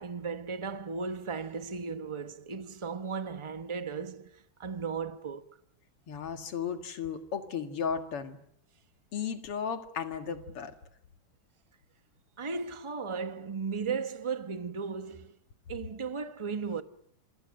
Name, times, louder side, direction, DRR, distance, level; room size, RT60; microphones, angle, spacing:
voice 1, 0.0-5.5 12.4-15.3 15.7-16.8, right 5 dB, 35° right, 0.4 m, -36 dB
voice 2, 6.1-8.4 9.1-10.7, left 7 dB, 90° left, 2.8 m, -35 dB
27.5 x 24.5 x 6.4 m
omnidirectional pair, 2.4 m